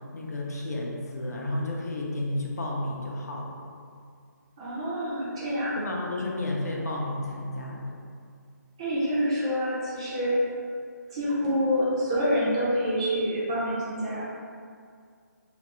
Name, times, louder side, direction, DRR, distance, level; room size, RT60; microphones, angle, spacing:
voice 1, 0.1-3.5 5.8-7.9, left 1 dB, 60° left, -2 dB, 0.5 m, -32 dB
voice 2, 4.6-5.8 8.8-10.4 11.1-14.2, equal, 15° right, -9 dB, 0.4 m, -27 dB
2.4 x 2.3 x 2.9 m, 2.2 s
hypercardioid pair, 170°, 10 cm